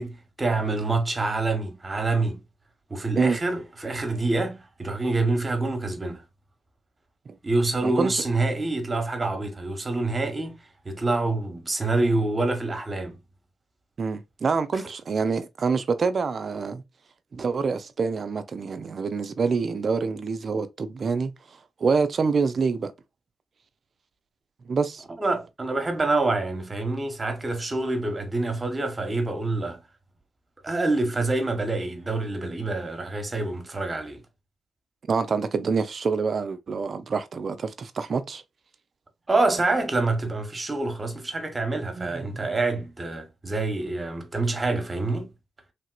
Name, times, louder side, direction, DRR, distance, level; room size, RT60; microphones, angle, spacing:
voice 1, 0.0-2.4 2.9-6.2 7.4-13.2 14.7-14.8 25.2-29.8 30.6-34.2 39.3-45.3, right 2 dB, 35° right, 1.2 m, -26 dB
voice 2, 7.8-8.2 14.0-16.8 17.3-21.3 21.8-22.9 24.7-25.0 35.1-38.4 42.0-42.5, right 5 dB, 55° right, 0.5 m, -26 dB
3.3 x 2.9 x 2.3 m
supercardioid pair, 50°, 0 cm